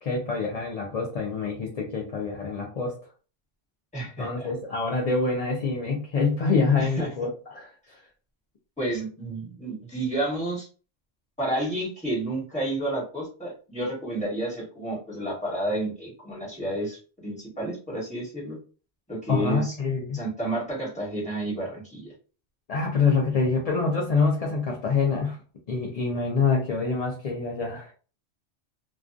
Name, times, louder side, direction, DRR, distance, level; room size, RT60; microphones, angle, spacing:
voice 1, 0.0-3.0 4.2-7.7 19.3-20.2 22.7-25.4 25.7-27.9, left 4 dB, 60° left, -1 dB, 0.4 m, -26 dB
voice 2, 3.9-4.5 6.8-7.1 8.8-10.7 11.4-18.6 19.1-19.7 20.1-22.1, right 1 dB, 5° left, -6 dB, 1.2 m, -30 dB
2.3 x 2.3 x 2.5 m, 0.37 s
omnidirectional pair, 1.2 m